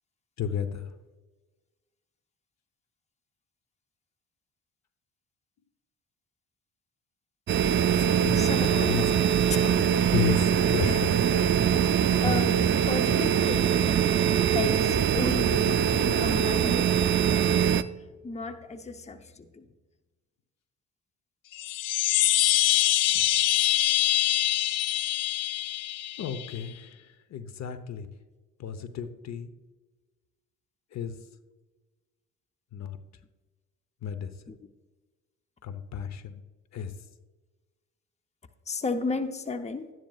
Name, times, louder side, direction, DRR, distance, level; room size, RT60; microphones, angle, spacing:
voice 1, 0.4-0.9 8.0-8.4 8.8-9.1 10.1-11.1 23.1-23.3 26.2-26.9 27.3-28.1 28.6-29.5 30.9-31.1 32.7-33.0 34.0-34.3 35.6-36.4 36.7-36.9, left 8 dB, 65° left, 11 dB, 0.9 m, -32 dB
sound 1, 7.5-17.8, right 8 dB, 40° right, 0.4 m, -23 dB
voice 2, 8.3-9.2 9.5-17.5 18.2-19.7 34.5-34.6 38.7-39.9, left 3 dB, 20° left, 8 dB, 0.8 m, -34 dB
sound 2, 21.5-26.6, left 14 dB, 85° left, 0.5 m, -24 dB
12.0 x 10.5 x 2.4 m, 1.2 s
cardioid pair, 90°, 30 cm